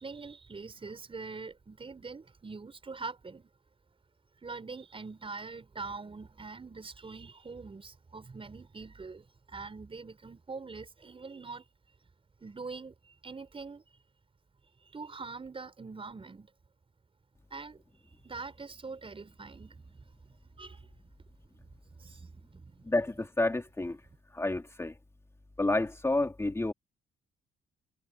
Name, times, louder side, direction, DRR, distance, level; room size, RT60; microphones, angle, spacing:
voice 1, 0.0-3.5 4.4-11.6 12.4-13.8 14.9-16.5 17.5-17.8 18.2-19.7 20.6-20.9 22.0-22.8, right 4 dB, 30° right, 6.0 m, -43 dB
voice 2, 22.8-24.0 24.3-24.9 25.6-26.7, left 2 dB, 15° left, 2.6 m, -29 dB
cardioid pair, 80°, 18 cm